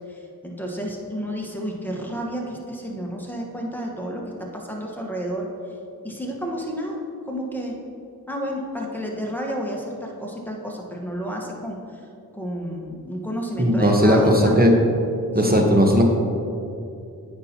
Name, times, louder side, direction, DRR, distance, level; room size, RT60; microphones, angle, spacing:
voice 1, 0.1-5.5 6.0-7.0 7.3-7.7 8.3-12.0 12.3-14.6 15.5-15.8, equal, 5° left, -1 dB, 1.3 m, -31 dB
voice 2, 13.6-14.7 15.3-16.0, equal, 25° right, 1 dB, 1.1 m, -17 dB
8.8 x 5.5 x 2.9 m, 2.6 s
cardioid pair, 45°, 37 cm